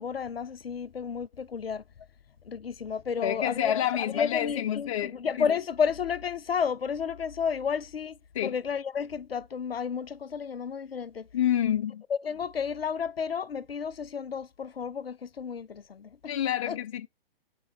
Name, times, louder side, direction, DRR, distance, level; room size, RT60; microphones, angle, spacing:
voice 1, 0.0-1.8 2.4-11.3 12.2-16.3 16.7-16.8, left 6 dB, 80° left, 0.6 m, -32 dB
voice 2, 3.2-5.5 8.3-8.6 11.3-12.0 16.3-17.1, left 10 dB, 35° left, 0.5 m, -28 dB
7.5 x 5.1 x 4.2 m
figure-of-eight pair, 130°, 30 cm